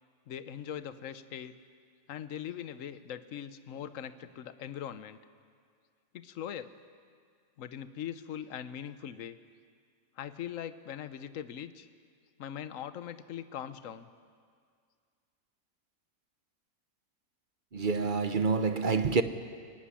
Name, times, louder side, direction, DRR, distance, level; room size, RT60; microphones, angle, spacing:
voice 1, 0.3-1.6 2.1-5.2 6.1-6.7 7.6-9.4 10.2-11.9 12.4-14.1, left 9 dB, 60° left, 1.2 m, -41 dB
voice 2, 17.7-19.2, right 4 dB, 40° right, 1.0 m, -27 dB
24.0 x 17.5 x 10.0 m
omnidirectional pair, 1.6 m